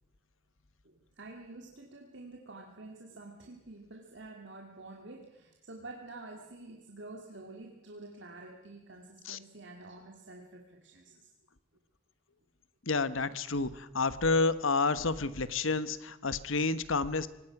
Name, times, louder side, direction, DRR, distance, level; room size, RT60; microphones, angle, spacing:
voice 1, 0.8-11.3, right 2 dB, 60° right, 1 dB, 2.3 m, -48 dB
voice 2, 12.9-13.7 13.9-17.3, left 3 dB, 75° left, 15 dB, 1.1 m, -29 dB
25.0 x 19.5 x 6.0 m, 1.0 s
head